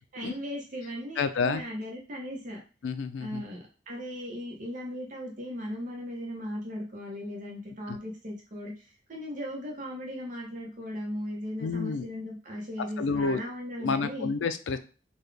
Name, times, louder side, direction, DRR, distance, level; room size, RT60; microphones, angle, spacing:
voice 1, 0.1-2.6 3.2-14.3, equal, 45° right, -1 dB, 0.8 m, -37 dB
voice 2, 1.2-1.6 2.8-3.4 7.9-8.0 11.6-12.1 12.8-13.4 13.8-14.8, left 4 dB, 85° left, 11 dB, 0.4 m, -29 dB
3.8 x 2.3 x 3.3 m, 0.35 s
head